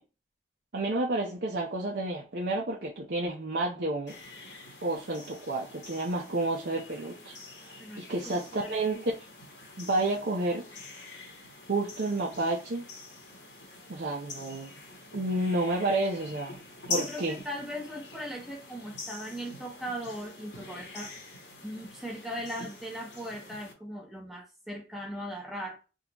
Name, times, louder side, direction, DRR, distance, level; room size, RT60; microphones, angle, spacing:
voice 1, 0.7-4.1 4.8-7.4 7.6-9.1 9.8-10.7 11.7-12.9 13.9-14.7 15.1-16.6 16.9-17.4, right 2 dB, 65° right, 0.6 m, -30 dB
sound 1, 4.1-23.7, left 3 dB, 75° left, 1.2 m, -45 dB
voice 2, 7.8-8.8 16.9-21.1 21.6-25.8, equal, ahead, 0.8 m, -39 dB
3.7 x 2.4 x 2.9 m
head